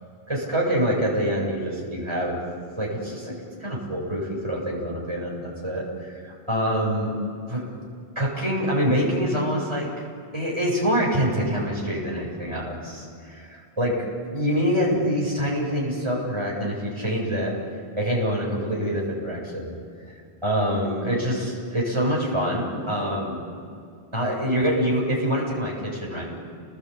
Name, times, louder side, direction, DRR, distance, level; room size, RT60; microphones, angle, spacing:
voice 1, 0.3-2.4 2.8-7.2 7.5-7.6 8.2-9.9 10.3-14.0 14.3-17.5 18.0-19.7 20.4-23.4 24.1-26.3, equal, 25° right, -4 dB, 7.9 m, -25 dB
29.0 x 20.5 x 8.7 m, 2.3 s
omnidirectional pair, 1.1 m